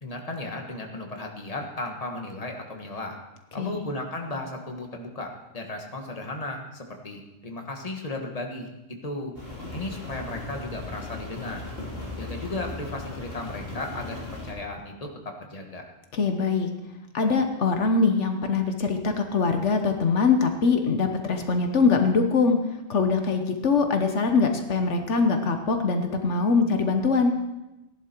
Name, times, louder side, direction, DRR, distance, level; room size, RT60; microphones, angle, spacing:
voice 1, 0.0-3.2 3.5-9.3 9.7-11.6 12.2-15.8, left 2 dB, 30° left, 2 dB, 1.7 m, -35 dB
Rain, 9.3-14.5, left 2 dB, 50° left, 3.9 m, -37 dB
voice 2, 16.1-16.7 17.1-22.6 22.9-27.3, left 4 dB, 80° left, 5 dB, 1.4 m, -23 dB
16.0 x 11.0 x 4.5 m, 0.97 s
omnidirectional pair, 1.2 m